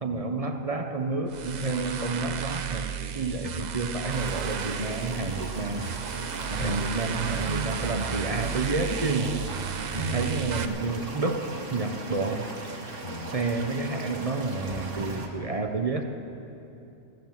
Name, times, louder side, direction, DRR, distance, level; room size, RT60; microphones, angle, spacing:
voice 1, 0.0-5.9 6.5-9.4 9.9-12.5 13.3-16.0, right 3 dB, 35° right, 5 dB, 0.7 m, -30 dB
sound 1, 1.3-10.7, right 8 dB, 80° right, 0.3 m, -33 dB
sound 2, 4.1-15.3, right 3 dB, 60° right, 1.7 m, -39 dB
voice 2, 9.9-10.3 13.0-13.3 14.7-14.8, left 5 dB, 45° left, 3 dB, 0.6 m, -36 dB
17.0 x 10.5 x 7.2 m, 2.8 s
omnidirectional pair, 1.5 m